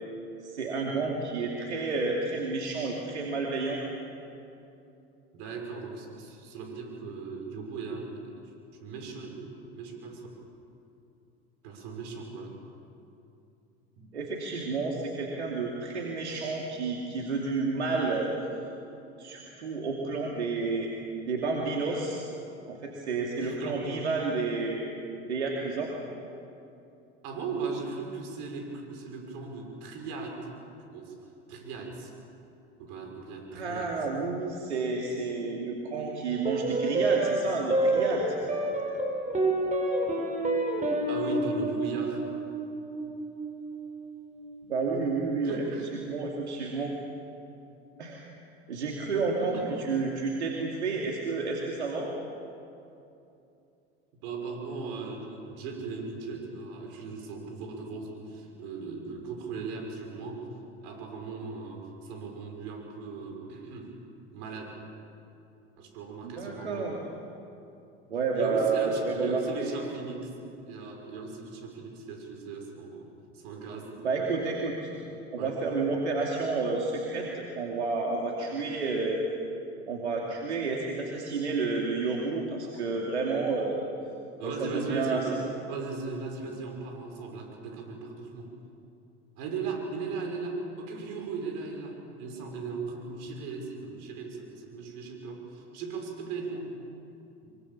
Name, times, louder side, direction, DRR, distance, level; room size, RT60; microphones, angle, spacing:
voice 1, 0.4-3.8 14.1-18.3 19.2-20.9 21.2-22.2 22.7-24.9 25.2-25.9 33.5-38.4 44.7-45.6 46.1-46.9 48.0-48.2 48.7-52.1 66.2-67.0 68.1-69.7 74.0-74.9 75.3-79.2 79.9-83.8 84.4-85.3, right 4 dB, 90° right, -1 dB, 2.8 m, -30 dB
voice 2, 5.3-8.3 8.8-10.3 11.6-12.6 14.0-14.1 23.4-23.9 27.2-30.5 30.9-31.2 31.5-32.1 32.8-33.9 41.0-42.3 45.4-45.9 49.4-49.7 54.2-60.5 60.8-63.9 64.3-64.8 65.8-66.9 68.3-70.3 70.6-74.4 75.4-75.6 84.4-85.3 85.6-88.5 89.4-96.7, right 4 dB, 65° right, 2 dB, 6.3 m, -38 dB
sound 1, 36.4-45.1, right 2 dB, 25° right, 5.8 m, -29 dB
25.0 x 24.0 x 7.3 m, 2.7 s
hypercardioid pair, 80°, 33 cm